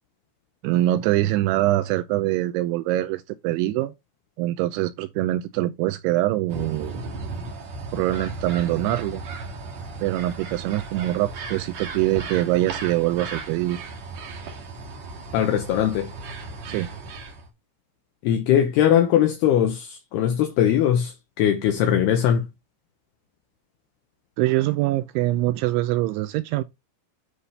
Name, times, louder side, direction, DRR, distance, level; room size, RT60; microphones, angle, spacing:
voice 1, 0.6-3.9 4.4-7.0 7.9-9.2 10.0-13.8 16.7-16.9 24.4-26.6, right 16 dB, 85° right, 3.0 m, -24 dB
sound 1, 6.5-17.5, right 3 dB, 55° right, 2.0 m, -36 dB
voice 2, 15.3-16.1 18.2-22.5, left 10 dB, 75° left, 2.7 m, -20 dB
9.8 x 3.7 x 4.1 m
omnidirectional pair, 5.3 m